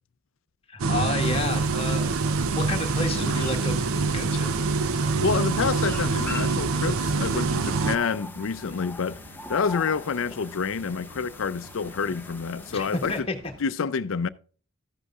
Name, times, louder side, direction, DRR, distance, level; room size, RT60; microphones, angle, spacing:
voice 1, 0.7-3.7 4.1-4.5 12.7-13.3, left 2 dB, 25° left, 1.5 m, -30 dB
sound 1, 0.8-8.0, right 4 dB, 80° right, 0.6 m, -25 dB
sound 2, 1.2-13.2, left 2 dB, 10° left, 0.7 m, -44 dB
sound 3, 3.1-13.6, right 2 dB, 50° right, 1.2 m, -49 dB
voice 2, 4.9-9.2 9.5-13.3 13.6-14.3, left 5 dB, 70° left, 0.5 m, -28 dB
14.0 x 8.1 x 2.4 m
head